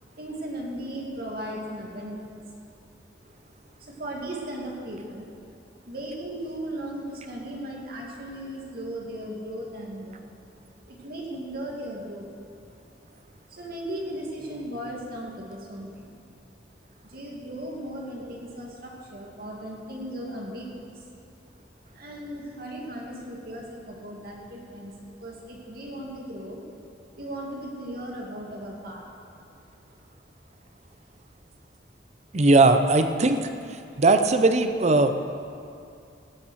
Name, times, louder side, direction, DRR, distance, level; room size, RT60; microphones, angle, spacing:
voice 1, 0.1-12.7 13.5-16.6 17.0-21.1 21.9-26.7 27.1-29.6, right 1 dB, 55° right, -2 dB, 2.4 m, -37 dB
voice 2, 32.3-33.5 34.0-35.2, right 2 dB, 40° right, 8 dB, 0.7 m, -19 dB
17.0 x 7.4 x 6.4 m, 2.5 s
head